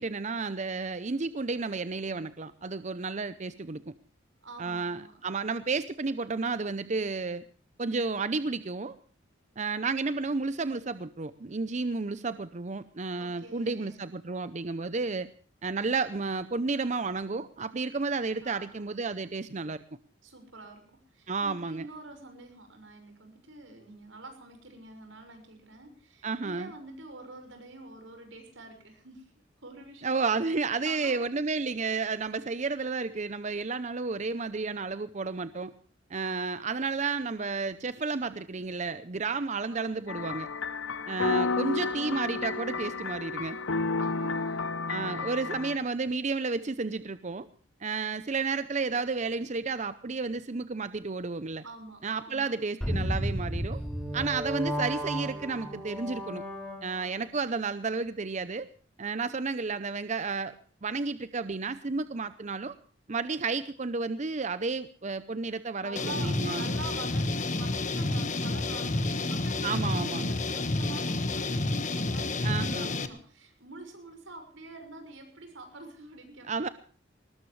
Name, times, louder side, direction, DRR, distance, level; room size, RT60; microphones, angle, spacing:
voice 1, 0.0-3.9 4.6-7.4 7.8-9.0 9.6-15.3 15.6-19.8 21.3-21.9 26.2-26.7 30.0-35.7 36.1-40.5 41.1-43.6 44.9-47.5 47.8-51.6 52.0-53.8 54.1-56.4 56.8-58.7 59.0-60.5 60.8-62.7 63.1-66.7 69.6-70.3 72.4-73.0 76.4-76.7, right 4 dB, 40° right, 13 dB, 0.7 m, -32 dB
voice 2, 4.4-5.2 13.2-14.0 18.4-19.0 20.2-30.1 30.8-31.3 39.7-39.9 44.0-46.1 51.6-52.6 65.8-76.5, right 2 dB, 85° right, 6 dB, 5.9 m, -47 dB
sound 1, 40.1-45.8, left 4 dB, 85° left, 1.0 m, -31 dB
sound 2, 52.8-57.2, equal, 5° left, 5.0 m, -33 dB
sound 3, 66.0-73.1, left 2 dB, 40° left, 1.5 m, -30 dB
20.5 x 19.5 x 3.2 m, 0.42 s
head